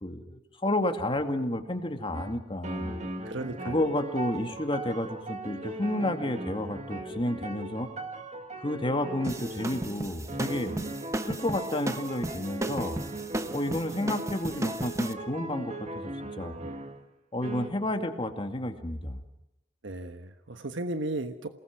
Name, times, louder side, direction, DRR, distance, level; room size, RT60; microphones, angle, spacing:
voice 1, 0.0-3.0 3.6-7.9 8.6-10.8 11.2-13.0 13.5-16.1 16.4-16.5 17.3-19.2, left 1 dB, 30° left, 5 dB, 2.3 m, -31 dB
sound 1, 2.1-2.3 2.6-17.1 17.4-17.7, right 2 dB, 35° right, 2.2 m, -39 dB
voice 2, 3.2-3.8 19.8-21.5, right 2 dB, 75° right, 7 dB, 1.3 m, -35 dB
sound 2, 9.2-15.1, right 1 dB, 15° right, 1.1 m, -34 dB
28.0 x 19.5 x 6.0 m, 0.89 s
head